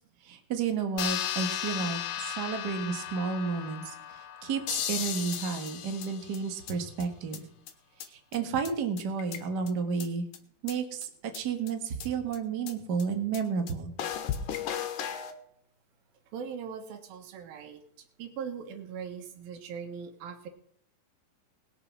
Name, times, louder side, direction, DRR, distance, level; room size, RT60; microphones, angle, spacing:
voice 1, 0.2-7.5 8.1-10.2 10.6-13.9, right 5 dB, 40° right, 5 dB, 1.6 m, -32 dB
sound 1, 1.0-5.9, left 10 dB, 85° left, 2.8 m, -36 dB
sound 2, 4.7-6.7 7.0-7.1 7.3-7.4 7.7-7.8 8.0-8.1 8.3-8.4 8.6-8.7 9.0-9.7 10.0-10.1 10.3-10.4 10.7-10.8 11.0-11.1 11.3-11.4 11.7-11.8 12.0-12.1 12.3-12.4 12.7-12.8 13.0-13.1 13.3-13.4 13.7-13.8 14.0-15.3, left 9 dB, 70° left, 2.6 m, -35 dB
voice 2, 16.3-17.8 18.2-20.5, right 7 dB, 85° right, 7 dB, 3.2 m, -40 dB
20.5 x 6.9 x 6.1 m, 0.65 s
omnidirectional pair, 4.1 m